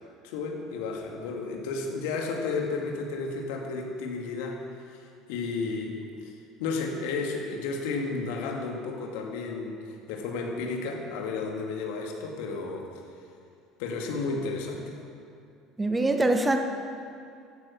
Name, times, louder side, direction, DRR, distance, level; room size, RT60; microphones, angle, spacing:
voice 1, 0.2-4.6 4.9-5.0 5.3-6.3 6.6-9.8 10.1-12.9 13.8-15.0, left 4 dB, 60° left, 1 dB, 2.1 m, -32 dB
voice 2, 15.8-16.6, right 2 dB, 15° right, 5 dB, 1.4 m, -23 dB
16.5 x 12.0 x 6.2 m, 2.5 s
figure-of-eight pair, 60°, 0 cm